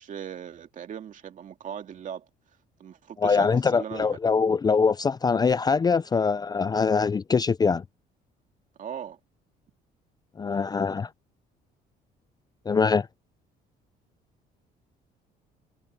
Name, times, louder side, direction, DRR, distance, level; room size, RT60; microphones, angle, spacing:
voice 1, 0.0-2.3 2.8-4.2 8.8-9.2, right 8 dB, 50° right, 2.4 m, -38 dB
voice 2, 3.2-7.8 10.4-11.1 12.7-13.1, left 5 dB, 25° left, 0.5 m, -23 dB
cardioid pair, 110°, 17 cm